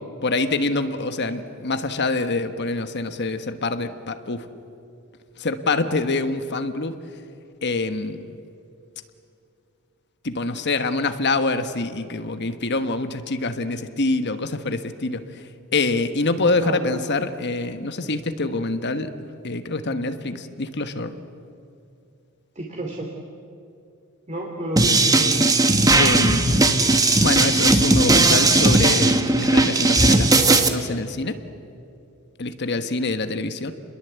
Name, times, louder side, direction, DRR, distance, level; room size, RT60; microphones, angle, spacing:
voice 1, 0.2-4.5 5.4-7.0 7.6-8.4 10.2-19.1 19.4-21.1 26.0-26.6 27.2-31.4 32.4-33.7, left 3 dB, 50° left, 9 dB, 1.3 m, -25 dB
voice 2, 22.5-23.1 24.3-25.5, right 1 dB, 30° right, 0 dB, 2.9 m, -30 dB
sound 1, 24.8-30.7, right 2 dB, 15° right, 1.3 m, -17 dB
29.5 x 22.0 x 8.2 m, 2.6 s
head